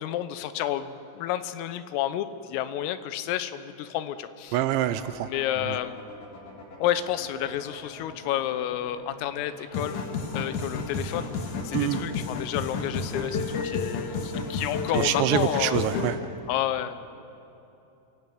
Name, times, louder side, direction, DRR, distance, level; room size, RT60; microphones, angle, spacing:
voice 1, 0.0-4.6 5.3-6.0 6.8-10.0 10.3-11.3 11.7-17.1, left 11 dB, 85° left, 11 dB, 3.6 m, -30 dB
sound 1, 4.5-14.9, left 3 dB, 40° left, 4.3 m, -46 dB
voice 2, 4.5-5.3 5.7-5.8 11.7-12.0 14.9-16.2, right 13 dB, 85° right, 12 dB, 2.7 m, -26 dB
sound 2, 9.7-16.1, left 4 dB, 60° left, 2.1 m, -31 dB
27.5 x 17.5 x 7.9 m, 2.9 s
omnidirectional pair, 5.9 m